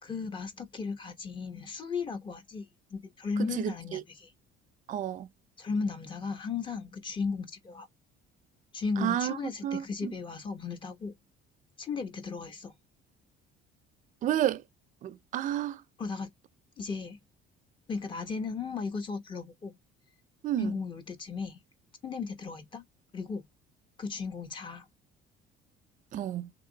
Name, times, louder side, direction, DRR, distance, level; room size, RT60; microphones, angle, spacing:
voice 1, 0.0-4.3 5.6-7.9 8.7-11.1 11.8-12.7 16.0-16.3 16.8-17.2 17.9-19.8 20.6-21.6 22.0-22.8 23.1-23.4 24.0-24.8, left 4 dB, 25° left, 1.0 m, -35 dB
voice 2, 3.4-4.0 4.9-5.3 9.0-9.4 9.6-10.1 14.2-14.6 15.0-15.8 20.4-20.7 26.1-26.5, right 11 dB, 40° right, 0.5 m, -31 dB
3.5 x 3.3 x 3.8 m
cardioid pair, 175°, 20 cm